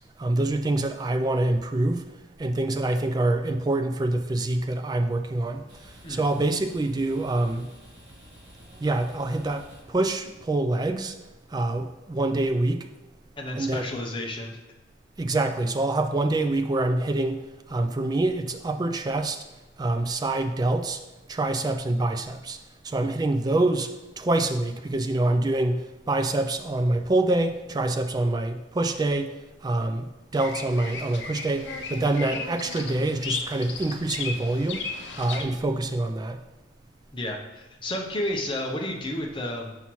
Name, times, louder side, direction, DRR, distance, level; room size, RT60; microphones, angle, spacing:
voice 1, 0.2-2.0 2.4-5.6 6.1-7.7 8.8-11.1 11.5-12.9 13.5-13.9 15.2-17.4 17.7-19.4 19.8-21.0 21.3-22.6 22.8-23.9 24.2-29.3 29.6-34.8 35.2-36.4, right 2 dB, 20° right, 7 dB, 0.3 m, -26 dB
sound 1, 5.4-10.6, equal, 60° right, 2.1 m, -51 dB
voice 2, 13.4-14.6 37.1-39.8, left 1 dB, 25° left, 0 dB, 0.7 m, -31 dB
Bird vocalization bird call bird song, 30.3-35.4, left 4 dB, 60° left, 0.7 m, -35 dB
5.6 x 5.6 x 3.1 m, 1.1 s
head